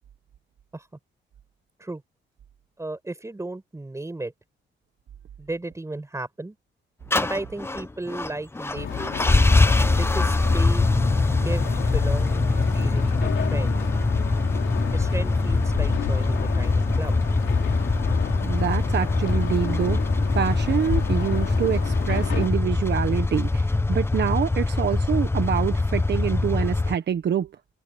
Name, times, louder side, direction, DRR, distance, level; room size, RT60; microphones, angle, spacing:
voice 1, 2.8-4.3 5.4-6.6 7.2-9.3 9.9-10.9 11.3-13.8 14.8-17.2, right 2 dB, 15° right, 5.9 m, -35 dB
sound 1, 7.1-27.0, left 2 dB, 10° left, 0.7 m, -23 dB
sound 2, 8.7-22.5, left 9 dB, 75° left, 4.3 m, -31 dB
voice 2, 18.4-20.0 20.3-27.5, right 8 dB, 60° right, 1.3 m, -26 dB
cardioid pair, 115°, 20 cm